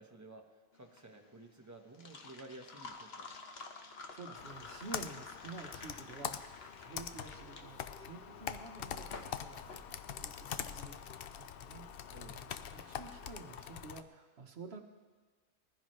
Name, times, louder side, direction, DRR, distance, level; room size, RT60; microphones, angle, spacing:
voice 1, 0.0-3.3 12.1-12.4, right 2 dB, 15° right, 3 dB, 0.9 m, -53 dB
sound 1, 0.8-10.6, left 3 dB, 45° left, 1.2 m, -51 dB
voice 2, 4.1-14.8, right 3 dB, 45° right, 4 dB, 1.2 m, -51 dB
Computer keyboard, 4.3-14.0, left 8 dB, 90° left, 0.5 m, -44 dB
sound 2, 7.0-11.8, right 1 dB, 70° left, 2.8 m, -63 dB
20.5 x 15.0 x 3.2 m, 1.4 s
omnidirectional pair, 1.6 m